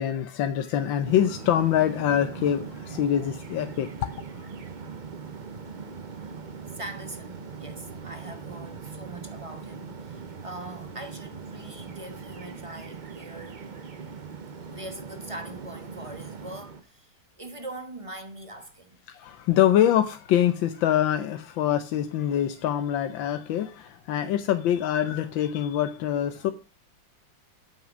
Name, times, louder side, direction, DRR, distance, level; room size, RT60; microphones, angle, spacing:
voice 1, 0.0-4.1 19.1-26.5, left 10 dB, 75° left, 1.5 m, -24 dB
sound 1, 1.0-16.8, right 5 dB, 45° right, 0.6 m, -40 dB
voice 2, 6.7-13.6 14.7-19.0, right 1 dB, 20° right, 1.1 m, -42 dB
8.6 x 7.6 x 6.1 m
omnidirectional pair, 2.1 m